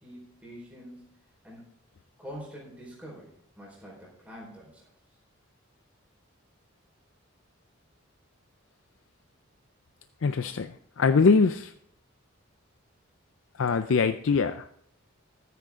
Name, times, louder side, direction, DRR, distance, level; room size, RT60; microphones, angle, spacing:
voice 1, 0.0-1.1 1.4-1.6 2.2-4.8, equal, 5° right, -5 dB, 4.4 m, -45 dB
voice 2, 10.2-11.7 13.6-14.7, left 4 dB, 70° left, 10 dB, 0.5 m, -23 dB
14.5 x 9.4 x 3.7 m, 0.67 s
head